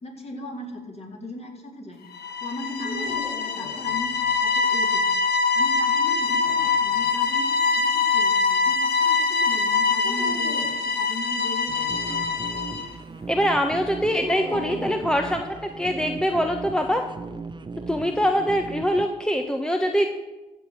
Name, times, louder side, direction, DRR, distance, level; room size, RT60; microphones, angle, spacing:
voice 1, 0.0-2.0 2.4-5.1 5.5-12.1 14.1-14.2 14.5-15.1, left 2 dB, 35° left, 0 dB, 4.0 m, -38 dB
sound 1, 2.1-12.9, left 4 dB, 65° left, 1.4 m, -23 dB
sound 2, 2.8-4.4 6.0-7.2 10.0-10.8 14.1-15.7, left 1 dB, 80° left, 3.6 m, -39 dB
sound 3, 11.7-19.1, right 4 dB, 25° right, 1.0 m, -37 dB
voice 2, 13.3-17.0 17.9-20.1, equal, 5° left, 4 dB, 1.3 m, -23 dB
15.0 x 7.2 x 6.4 m, 1.1 s
hypercardioid pair, 50°, 18 cm